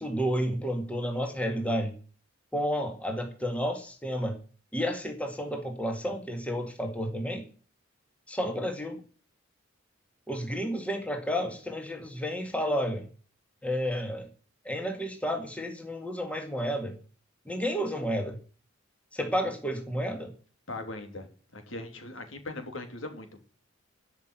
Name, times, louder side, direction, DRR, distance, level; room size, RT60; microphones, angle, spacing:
voice 1, 0.0-2.0 2.5-4.4 4.7-7.5 8.3-9.0 10.3-13.1 13.6-14.3 14.6-17.0 17.5-18.4 19.1-20.3, equal, 5° left, 4 dB, 2.0 m, -31 dB
voice 2, 20.7-23.4, left 2 dB, 70° left, 6 dB, 3.0 m, -40 dB
12.5 x 6.1 x 9.1 m, 0.40 s
head